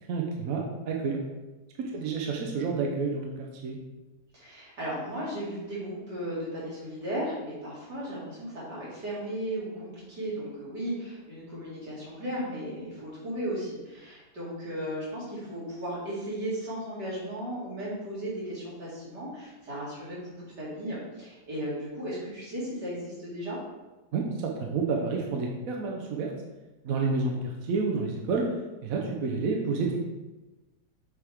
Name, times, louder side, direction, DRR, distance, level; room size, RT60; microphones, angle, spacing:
voice 1, 0.1-1.2 1.8-3.8 24.1-26.3 26.8-28.5 28.8-30.0, right 4 dB, 60° right, 0 dB, 1.1 m, -29 dB
voice 2, 1.9-2.2 4.3-23.6 27.0-27.3, right 1 dB, 80° right, -7 dB, 2.9 m, -36 dB
6.6 x 4.7 x 3.5 m, 1.1 s
omnidirectional pair, 1.8 m